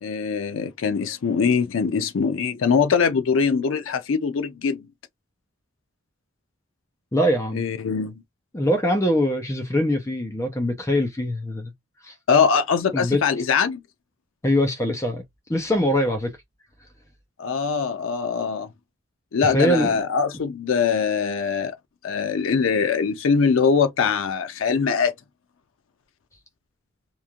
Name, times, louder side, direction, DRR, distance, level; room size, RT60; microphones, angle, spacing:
voice 1, 0.0-4.9 7.5-8.1 12.3-13.8 17.4-18.7 19.3-21.8 22.0-25.1, left 6 dB, 80° left, 0.4 m, -22 dB
voice 2, 7.1-7.6 8.5-11.7 12.0-12.1 12.9-13.2 14.4-15.2 15.5-16.3 19.4-20.0, equal, 15° left, 0.6 m, -22 dB
3.0 x 2.5 x 2.3 m
head